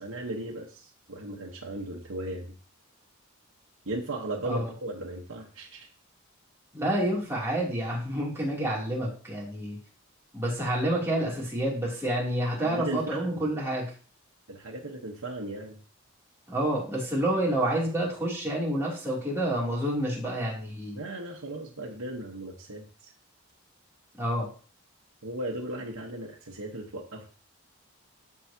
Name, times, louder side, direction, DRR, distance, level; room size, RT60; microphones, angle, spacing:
voice 1, 0.0-2.5 3.8-5.9 12.6-13.4 14.5-15.8 20.9-23.1 25.2-27.3, right 1 dB, 75° right, -2 dB, 1.3 m, -36 dB
voice 2, 6.7-9.8 10.3-13.9 16.5-21.0 24.2-24.5, right 1 dB, 10° right, -5 dB, 2.9 m, -28 dB
14.0 x 4.8 x 2.9 m, 0.40 s
head